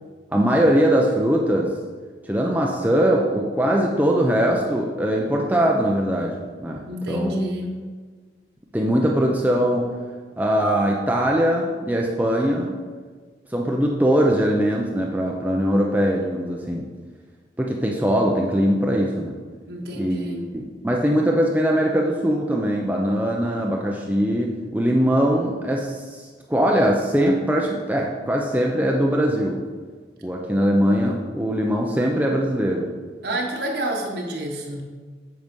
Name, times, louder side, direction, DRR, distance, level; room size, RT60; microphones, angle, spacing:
voice 1, 0.3-1.8 2.3-7.3 8.7-10.0 10.4-12.8 13.5-16.9 17.6-19.4 19.9-29.6 30.2-32.9, equal, 10° right, -1 dB, 0.6 m, -21 dB
voice 2, 6.8-7.7 19.7-20.5 33.2-34.9, right 1 dB, 65° right, -1 dB, 1.3 m, -28 dB
8.3 x 5.9 x 5.3 m, 1.5 s
head